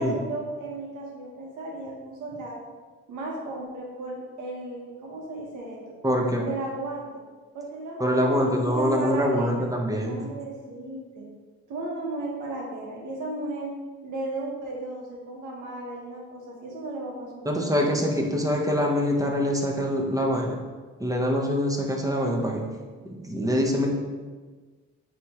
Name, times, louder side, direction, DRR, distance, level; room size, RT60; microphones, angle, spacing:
voice 1, 0.0-2.6 3.1-5.8 6.5-7.1 7.5-9.5 10.0-11.3 11.7-13.7 14.0-17.7, right 2 dB, 80° right, -3 dB, 1.7 m, -35 dB
voice 2, 6.0-6.4 8.0-10.2 17.4-20.6 21.0-22.6 23.2-23.9, equal, 10° right, 0 dB, 1.2 m, -24 dB
9.2 x 3.6 x 3.1 m, 1.4 s
cardioid pair, 90°, 30 cm